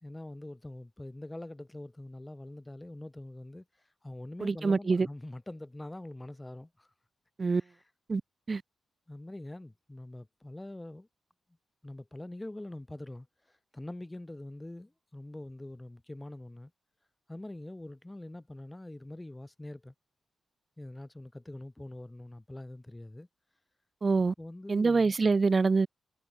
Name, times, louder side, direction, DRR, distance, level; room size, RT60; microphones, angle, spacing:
voice 1, 0.0-3.6 4.0-6.9 7.5-7.7 9.1-11.1 11.8-16.7 17.3-19.9 20.8-23.3 24.4-25.1, left 1 dB, 15° left, 2.3 m, -44 dB
voice 2, 4.4-5.1 7.4-7.6 8.1-8.2 8.5-8.6 24.0-24.3 24.7-25.9, right 4 dB, 40° right, 0.5 m, -25 dB
supercardioid pair, 55°, 0 cm